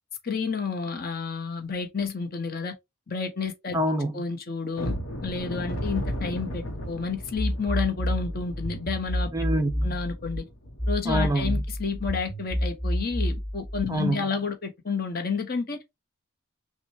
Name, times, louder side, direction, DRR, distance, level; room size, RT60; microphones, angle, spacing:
voice 1, 0.2-2.7 3.1-3.8 4.1-5.0 5.2-9.3 9.8-10.4 10.9-15.8, left 5 dB, 45° left, 0.9 m, -30 dB
voice 2, 3.7-4.1 9.3-10.0 11.1-11.6 13.9-14.3, right 1 dB, 15° right, 0.4 m, -26 dB
sound 1, 4.7-11.5 11.9-12.0 12.4-12.6 13.1-13.2, equal, 85° left, 0.9 m, -36 dB
sound 2, 7.4-10.4 10.8-13.8, equal, 20° left, 3.0 m, -29 dB
5.8 x 2.2 x 2.9 m
head